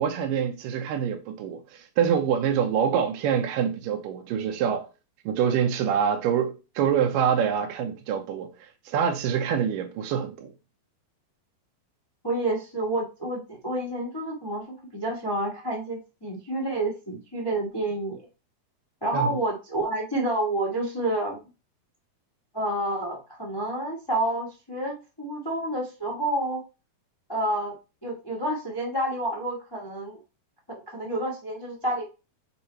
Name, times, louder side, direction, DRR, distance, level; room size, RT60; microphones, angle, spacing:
voice 1, 0.0-1.6 2.0-4.9 5.3-8.5 8.9-10.5 19.1-19.3, right 8 dB, 80° right, 2.0 m, -25 dB
voice 2, 12.2-18.2 19.0-21.4 22.5-26.6 27.3-27.7 28.0-30.2 30.9-32.0, right 1 dB, 25° left, 0.5 m, -29 dB
6.7 x 3.9 x 4.4 m
omnidirectional pair, 4.6 m